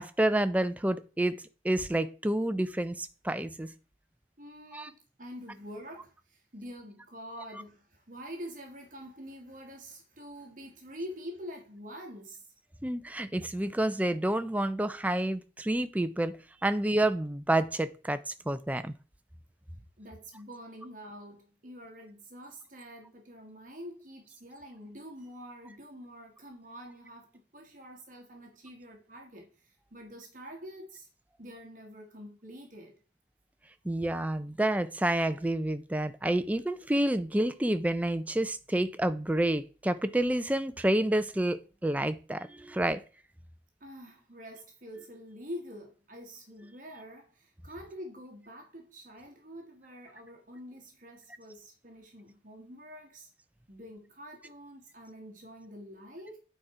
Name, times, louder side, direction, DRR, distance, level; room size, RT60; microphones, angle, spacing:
voice 1, 0.0-1.4 1.6-3.7 4.7-4.9 12.8-16.4 16.6-18.9 33.8-43.0, right 1 dB, 10° right, 0.4 m, -29 dB
voice 2, 4.4-12.5 20.0-31.1 31.4-32.9 43.8-53.3 53.7-56.4, equal, 45° right, 1.4 m, -46 dB
9.1 x 4.3 x 4.8 m
head